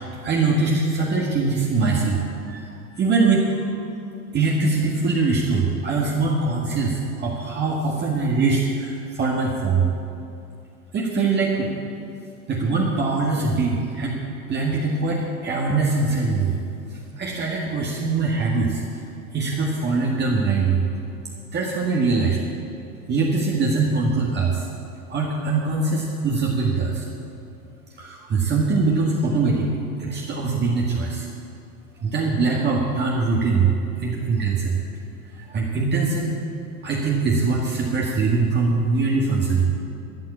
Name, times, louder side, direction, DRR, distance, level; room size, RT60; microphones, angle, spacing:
voice 1, 0.2-3.7 4.3-9.9 10.9-11.7 12.5-14.2 14.5-16.5 17.2-18.8 19.3-20.8 21.5-22.4 23.1-24.7 25.1-27.0 28.0-29.7 30.0-31.3 32.0-34.8 35.3-36.4 36.8-39.7, right 4 dB, 25° right, -2 dB, 1.8 m, -22 dB
13.5 x 8.5 x 8.5 m, 2.7 s
figure-of-eight pair, 95°, 45 cm